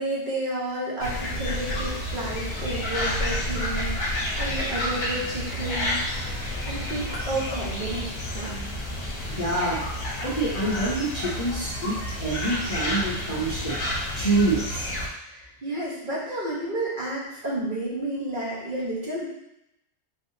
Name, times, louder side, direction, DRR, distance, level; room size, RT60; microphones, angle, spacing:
voice 1, 0.0-6.0 6.6-8.7 15.3-19.2, right 1 dB, 45° right, -6 dB, 1.2 m, -31 dB
sound 1, 1.0-15.1, left 1 dB, 60° left, 1.1 m, -30 dB
voice 2, 9.3-9.8 10.2-13.8 14.1-14.9, right 2 dB, 35° left, -7 dB, 0.7 m, -26 dB
4.2 x 3.3 x 2.7 m, 0.83 s
omnidirectional pair, 1.2 m